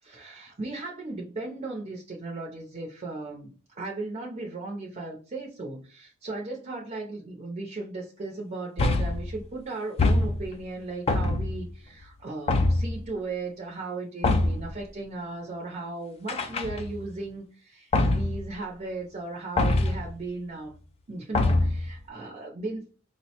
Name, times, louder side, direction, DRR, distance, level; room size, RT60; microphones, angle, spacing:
voice 1, 0.0-20.7 21.1-22.8, right 3 dB, 35° right, 0 dB, 0.5 m, -36 dB
sound 1, 8.8-9.3 10.0-10.6 11.1-11.7 12.5-13.0 14.2-14.7 16.3-17.1 17.9-18.4 19.6-20.1 21.3-21.9, left 2 dB, 30° left, 0.3 m, -24 dB
4.9 x 2.1 x 2.8 m, 0.39 s
head